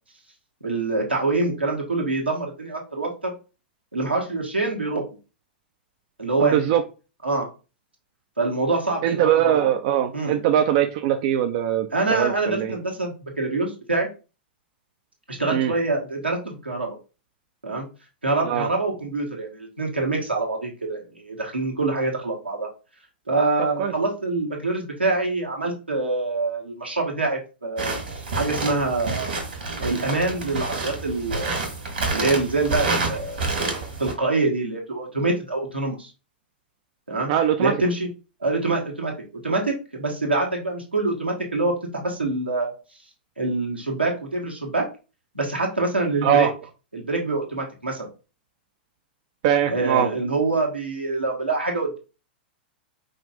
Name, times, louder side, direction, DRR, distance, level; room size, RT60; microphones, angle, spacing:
voice 1, 0.6-3.3 3.9-5.0 6.2-6.8 7.2-7.5 8.4-9.7 10.1-10.4 11.9-14.1 15.3-17.0 17.6-17.9 18.2-22.7 23.3-29.3 29.8-31.6 32.1-33.7 34.0-36.1 37.1-37.3 37.6-38.1 38.4-39.1 39.4-42.7 43.4-44.9 45.3-46.5 46.9-48.1 49.7-52.0, right 3 dB, 85° right, -1 dB, 1.5 m, -25 dB
voice 2, 6.4-6.8 9.0-12.8 15.5-15.7 18.5-18.7 23.8-23.9 37.3-37.7 46.2-46.5 49.4-50.1, right 10 dB, 45° right, 7 dB, 0.4 m, -21 dB
sound 1, 27.8-34.1, right 3 dB, 65° right, 1.8 m, -28 dB
5.1 x 2.5 x 3.6 m, 0.32 s
figure-of-eight pair, 100°, 6 cm